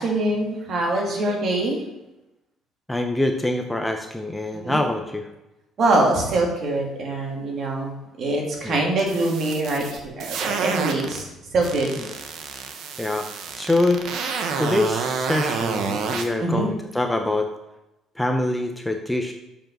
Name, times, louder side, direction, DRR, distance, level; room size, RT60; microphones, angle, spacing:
voice 1, 0.0-1.8 4.5-4.8 5.8-7.9 8.2-11.2 11.5-11.9 16.4-16.7, right 2 dB, 50° right, 0 dB, 2.5 m, -23 dB
voice 2, 2.9-5.3 8.6-8.8 12.0-12.1 13.0-13.3 13.6-14.0 14.6-17.5 18.2-19.3, left 2 dB, 5° left, 4 dB, 0.7 m, -24 dB
sound 1, 9.0-11.2 11.6-16.3, right 5 dB, 65° right, 1.1 m, -28 dB
7.4 x 5.2 x 6.0 m, 0.94 s
cardioid pair, 115°, 0 cm